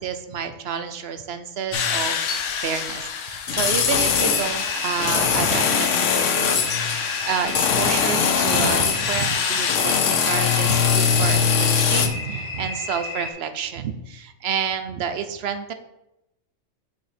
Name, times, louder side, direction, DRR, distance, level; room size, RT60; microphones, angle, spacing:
voice 1, 0.0-2.3 2.6-15.7, right 7 dB, 60° right, 9 dB, 0.8 m, -29 dB
sound 1, 1.7-12.1, left 7 dB, 80° left, 1.1 m, -22 dB
sound 2, 3.9-13.3, left 2 dB, 30° left, 1.8 m, -33 dB
6.4 x 5.5 x 4.2 m, 0.89 s
omnidirectional pair, 1.3 m